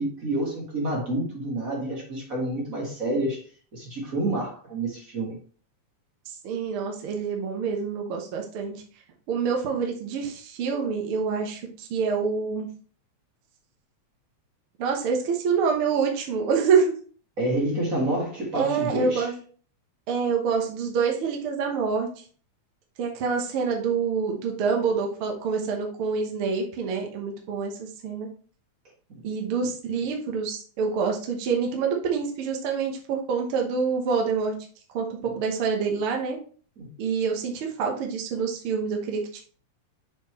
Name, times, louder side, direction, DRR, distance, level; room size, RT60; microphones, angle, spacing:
voice 1, 0.0-3.4 3.7-5.4 17.4-19.3 36.8-36.9, right 1 dB, 40° right, -1 dB, 1.4 m, -28 dB
voice 2, 6.3-8.8 9.3-12.7 14.8-17.0 18.5-19.3 20.1-22.1 23.0-28.3 29.2-34.5 34.9-36.4 37.0-39.4, right 5 dB, 60° right, 1 dB, 1.6 m, -26 dB
7.4 x 4.4 x 3.1 m, 0.42 s
omnidirectional pair, 3.4 m